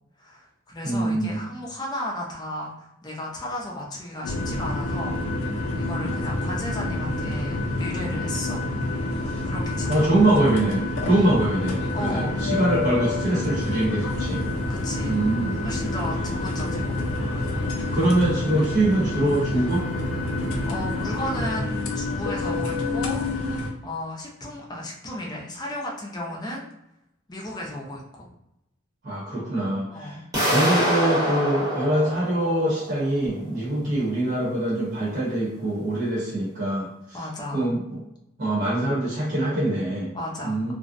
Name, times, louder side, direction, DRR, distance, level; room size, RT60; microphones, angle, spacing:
voice 1, 0.2-5.2 5.7-8.6 9.4-10.1 11.1-11.3 11.9-12.3 14.7-15.2 15.6-17.0 20.7-23.3 23.8-26.7 27.3-28.3 29.9-30.2 37.1-37.7 40.1-40.7, left 1 dB, 20° left, -2 dB, 0.4 m, -34 dB
voice 2, 0.8-1.4 9.9-14.4 15.0-15.6 17.9-19.8 29.0-37.2 37.5-38.0 38.4-40.1 40.4-40.7, right 1 dB, 50° right, -9 dB, 0.9 m, -24 dB
sound 1, 4.2-23.7, left 2 dB, 85° left, 0.4 m, -28 dB
sound 2, 14.1-17.8 19.7-21.5, equal, 70° right, 1.1 m, -38 dB
sound 3, 30.3-33.2, equal, 20° right, 0.9 m, -25 dB
2.5 x 2.0 x 2.5 m, 0.85 s
head